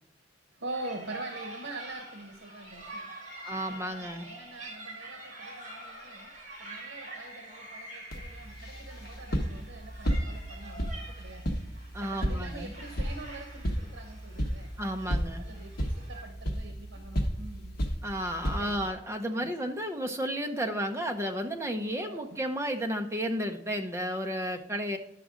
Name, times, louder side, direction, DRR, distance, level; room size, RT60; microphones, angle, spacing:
voice 1, 0.5-3.2 3.5-6.3 6.6-11.6 12.0-14.7 15.0-17.9 18.6-18.9 19.4-19.5 22.1-22.4, right 2 dB, 85° right, 4 dB, 0.9 m, -44 dB
sound 1, 0.7-16.2, right 1 dB, 40° right, 2.1 m, -46 dB
voice 2, 3.4-4.3 11.9-12.7 14.8-15.5 18.0-25.0, equal, 15° right, 4 dB, 0.6 m, -32 dB
sound 2, 8.1-18.9, equal, 55° left, 1.0 m, -34 dB
10.5 x 6.1 x 3.7 m, 0.78 s
head